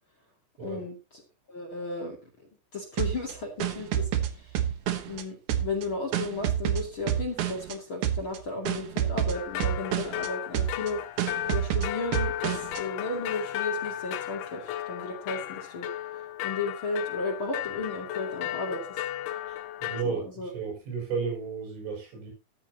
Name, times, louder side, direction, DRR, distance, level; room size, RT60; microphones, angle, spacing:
voice 1, 0.6-1.2 1.5-2.2 2.7-4.7 5.1-11.0 11.5-15.9 16.4-19.0 20.0-20.5, left 3 dB, 35° left, 1 dB, 2.5 m, -34 dB
sound 1, 3.0-5.2 5.5-7.7 8.0-8.4 8.7-10.3 10.5-10.9 11.2-12.8, right 10 dB, 75° right, 1.7 m, -28 dB
sound 2, 9.3-20.0, left 13 dB, 90° left, 3.4 m, -35 dB
voice 2, 19.5-22.3, right 5 dB, 90° right, 0 dB, 8.9 m, -34 dB
13.5 x 13.0 x 2.9 m, 0.27 s
omnidirectional pair, 5.3 m